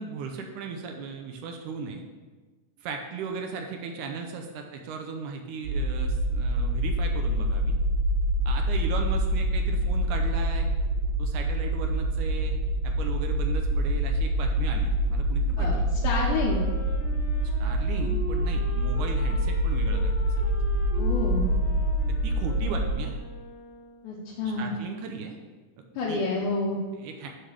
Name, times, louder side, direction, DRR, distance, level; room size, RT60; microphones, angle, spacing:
voice 1, 0.0-2.0 2.8-7.8 8.5-10.7 11.2-15.9 17.6-20.5 20.8-21.0 22.1-23.2 24.6-25.4 26.1-26.2 26.9-27.3, right 5 dB, 80° right, 4 dB, 2.1 m, -37 dB
sound 1, 5.6-23.0, right 1 dB, 60° right, 3.6 m, -26 dB
Wind instrument woodwind instrument, 15.9-24.2, left 1 dB, 50° left, 1.3 m, -42 dB
voice 2, 16.0-16.6 21.0-21.5 24.0-24.7 26.0-26.8, left 3 dB, 80° left, -4 dB, 2.3 m, -28 dB
7.5 x 3.3 x 6.2 m, 1.3 s
omnidirectional pair, 3.7 m